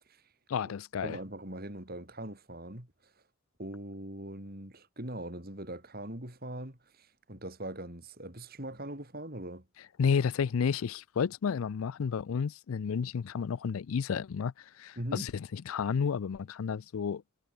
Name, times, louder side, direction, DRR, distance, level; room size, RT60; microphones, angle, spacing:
voice 1, 0.5-1.2 10.0-17.2, left 6 dB, 80° left, 0.4 m, -31 dB
voice 2, 1.0-2.9 3.6-9.7 15.0-15.3, right 1 dB, 45° right, 4.6 m, -41 dB
head